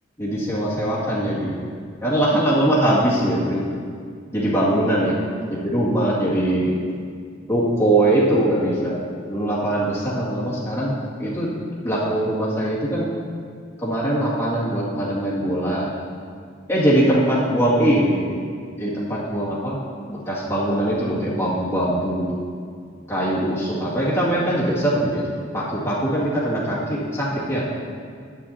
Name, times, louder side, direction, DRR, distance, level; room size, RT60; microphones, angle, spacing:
voice 1, 0.2-1.6 2.0-3.6 4.3-5.2 5.6-6.8 7.5-9.0 9.3-11.5 11.8-13.1 13.8-15.9 16.7-18.3 18.8-19.8 20.1-22.4 23.1-25.2 25.5-27.6, right 1 dB, 15° left, -8 dB, 2.2 m, -21 dB
12.5 x 9.1 x 2.9 m, 2.1 s
head